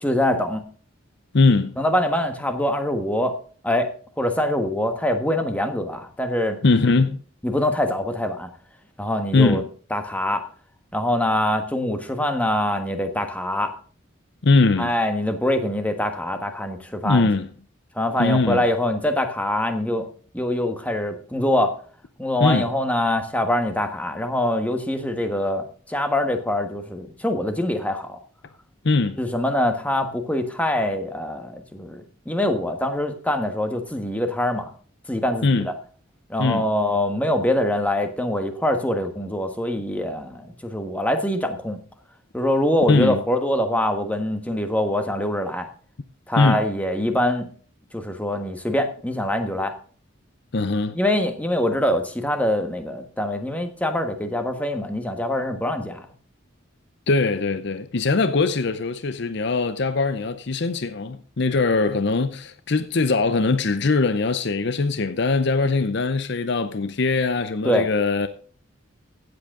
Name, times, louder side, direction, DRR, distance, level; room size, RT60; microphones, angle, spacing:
voice 1, 0.0-0.6 1.8-3.3 3.6-3.9 4.2-6.6 7.4-8.5 9.0-9.6 9.9-10.4 10.9-13.7 14.8-17.3 17.9-20.1 20.3-21.7 22.2-28.2 29.2-34.7 35.1-35.7 36.3-41.8 42.3-45.7 46.3-47.5 47.9-49.7 50.9-56.0 67.6-67.9, left 1 dB, 5° left, 1.3 m, -24 dB
voice 2, 1.3-1.8 6.6-7.2 9.3-9.7 14.4-14.9 17.0-17.5 18.2-18.7 22.4-22.6 28.8-29.2 35.4-35.7 36.4-36.7 42.9-43.2 46.4-46.6 50.5-51.0 57.1-68.3, left 3 dB, 60° left, 0.7 m, -21 dB
15.5 x 7.9 x 3.7 m
head